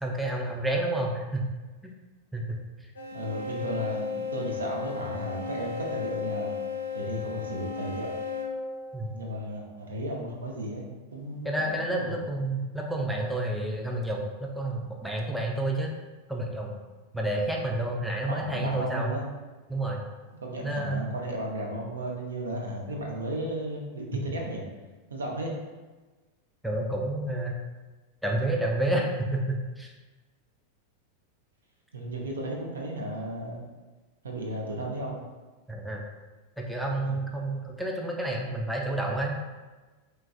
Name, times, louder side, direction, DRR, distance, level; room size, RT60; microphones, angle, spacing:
voice 1, 0.0-1.5 1.8-1.9 2.3-2.6 8.9-9.1 11.4-15.9 16.3-16.8 17.1-19.1 19.7-20.0 20.6-21.1 26.6-27.6 28.2-29.9 35.7-36.0 36.6-39.5, right 1 dB, ahead, -1 dB, 0.4 m, -29 dB
sound 1, 3.0-9.4, left 5 dB, 75° left, 0.4 m, -35 dB
voice 2, 3.1-6.5 6.9-8.1 9.1-12.1 18.3-19.2 20.4-24.6 25.1-25.6 31.9-33.6 34.2-35.2 37.0-37.1, right 1 dB, 70° right, 0 dB, 0.5 m, -34 dB
3.1 x 2.3 x 2.4 m, 1.2 s
figure-of-eight pair, 90°, 0 cm